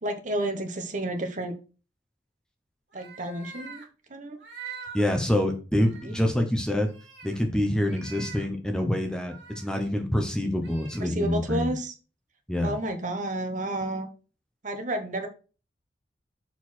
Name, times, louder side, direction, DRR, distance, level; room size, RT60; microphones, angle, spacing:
voice 1, 0.0-1.5 2.9-3.8 4.1-4.4 6.0-6.2 11.0-11.9 12.6-14.1 14.6-15.3, right 1 dB, 45° right, 6 dB, 1.2 m, -31 dB
sound 1, 2.9-3.9 4.4-5.0 5.5-5.6 5.8-6.3 6.8-7.4 7.8-8.5 9.0-9.7 10.6-11.0, right 6 dB, 70° right, 2.1 m, -44 dB
voice 2, 4.9-6.9 7.2-11.7 12.5-12.7, left 1 dB, 5° left, 4 dB, 0.8 m, -26 dB
6.8 x 4.4 x 4.3 m, 0.35 s
head